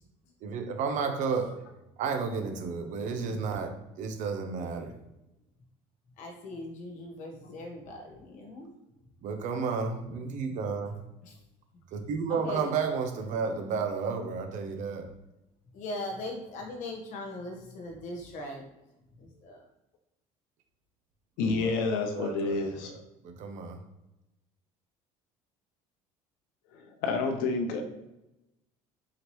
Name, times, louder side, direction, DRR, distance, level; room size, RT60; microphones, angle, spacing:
voice 1, 0.4-1.6 2.0-5.0 9.2-11.0 11.9-15.1 21.4-23.0 23.2-23.8, right 5 dB, 60° right, 5 dB, 0.8 m, -32 dB
voice 2, 6.2-8.7 11.3-11.4 12.3-12.7 15.7-18.6 19.2-19.6, left 1 dB, 60° left, 1 dB, 1.3 m, -39 dB
voice 3, 21.4-22.9 26.7-27.8, left 4 dB, 85° left, 4 dB, 0.7 m, -29 dB
4.8 x 2.9 x 3.1 m, 0.92 s
cardioid pair, 110°, 14 cm